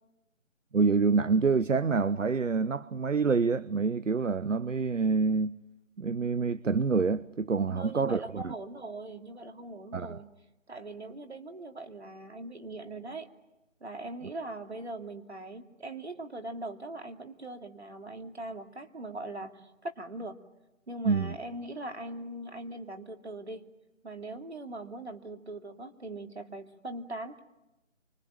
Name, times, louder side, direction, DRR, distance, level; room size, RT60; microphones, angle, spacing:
voice 1, 0.7-5.6 6.0-8.5 9.9-10.2 21.0-21.4, right 4 dB, 70° right, 0.9 m, -27 dB
voice 2, 7.7-10.3 10.7-13.3 13.8-20.4 20.9-23.7 24.0-27.4, right 2 dB, 55° right, 2.8 m, -41 dB
26.0 x 25.5 x 8.9 m
figure-of-eight pair, 175°, 39 cm